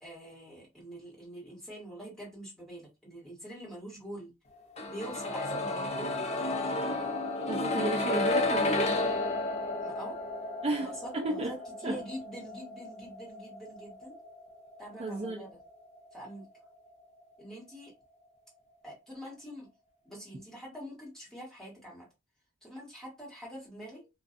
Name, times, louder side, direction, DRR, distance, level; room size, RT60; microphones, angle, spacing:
voice 1, 0.0-4.3 4.9-6.2 9.8-10.2 10.6-14.2 14.8-15.6 16.1-16.4 17.4-17.9 18.8-19.7 20.0-22.1 22.6-24.1, equal, 5° left, 1.4 m, -45 dB
sound 1, 4.8-16.6 16.9-17.0, left 2 dB, 30° left, 0.5 m, -33 dB
voice 2, 7.5-9.0 10.6-11.5 11.8-12.0 15.0-15.4, right 2 dB, 30° right, 0.3 m, -33 dB
2.5 x 2.3 x 2.4 m
head